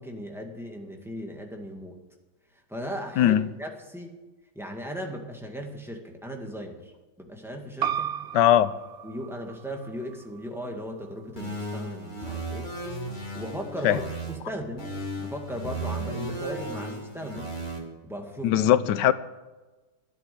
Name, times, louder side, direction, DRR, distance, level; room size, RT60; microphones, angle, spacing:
voice 1, 0.0-2.0 2.7-4.1 4.6-6.8 7.2-8.2 9.0-12.7 13.3-17.5 18.0-18.7 19.0-19.1, equal, ahead, 1 dB, 1.9 m, -37 dB
voice 2, 3.2-3.5 8.3-8.7 13.8-14.0 18.4-19.1, left 12 dB, 85° left, 15 dB, 1.3 m, -20 dB
sound 1, 7.8-13.0, right 9 dB, 90° right, 0.5 m, -36 dB
sound 2, 11.4-14.4 14.8-17.8, right 2 dB, 25° left, 2.7 m, -35 dB
12.0 x 11.0 x 8.5 m, 1.2 s
omnidirectional pair, 1.8 m